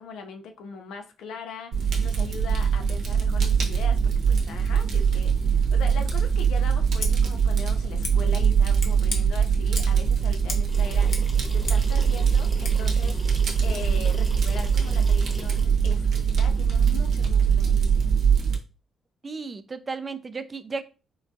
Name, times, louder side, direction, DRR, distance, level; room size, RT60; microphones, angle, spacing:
voice 1, 0.0-18.1, left 5 dB, 80° left, 0.5 m, -40 dB
Fire, 1.7-18.6, right 6 dB, 65° right, 0.8 m, -22 dB
Scissors, 6.9-7.1 8.0-8.1 8.8-9.2 9.8-10.0 10.5-10.7 10.9-11.9 12.6-12.8, left 3 dB, 55° left, 0.9 m, -35 dB
sound 1, 10.7-15.6, equal, ahead, 0.9 m, -43 dB
voice 2, 19.2-20.8, right 4 dB, 30° right, 0.4 m, -34 dB
3.7 x 2.2 x 2.5 m
cardioid pair, 90°, 0 cm